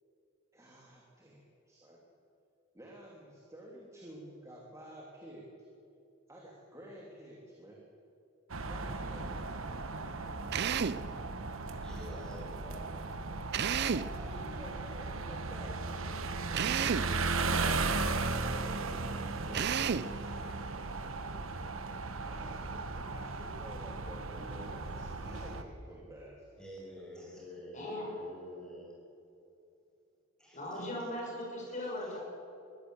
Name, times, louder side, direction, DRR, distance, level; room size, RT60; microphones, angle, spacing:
voice 1, 0.5-2.0 2.7-5.5 6.3-7.8 8.7-9.4 13.5-20.9 22.2-26.6, right 1 dB, 15° right, -3 dB, 2.9 m, -51 dB
sound 1, 8.5-25.6, right 3 dB, 80° right, 1.4 m, -36 dB
Drill, 10.5-11.1 13.5-14.2 16.5-17.2 19.5-20.2, right 7 dB, 55° right, 0.5 m, -31 dB
voice 2, 11.8-13.2 26.6-28.9 30.4-30.9 31.7-32.2, equal, 5° left, -3 dB, 6.5 m, -48 dB
voice 3, 27.7-28.1 30.5-32.2, left 1 dB, 35° left, -2 dB, 6.6 m, -38 dB
22.5 x 15.5 x 8.1 m, 2.7 s
head